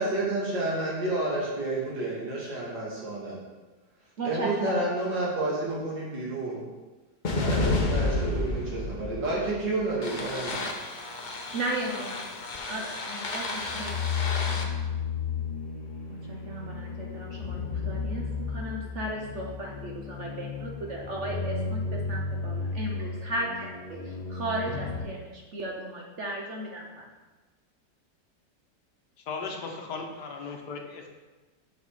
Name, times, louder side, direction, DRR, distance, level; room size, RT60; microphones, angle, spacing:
voice 1, 0.0-3.4 4.2-6.6 7.4-10.7, right 2 dB, 75° right, -5 dB, 2.8 m, -30 dB
voice 2, 4.2-4.7 11.5-12.2 12.7-14.1 14.5-14.9 16.1-23.5 23.9-26.8, right 1 dB, 50° right, -1 dB, 0.9 m, -35 dB
sound 1, 7.2-25.0, left 3 dB, 50° left, 0.5 m, -32 dB
voice 3, 29.3-31.1, left 4 dB, 70° left, 2 dB, 1.5 m, -36 dB
6.4 x 6.0 x 4.8 m, 1.2 s
omnidirectional pair, 1.9 m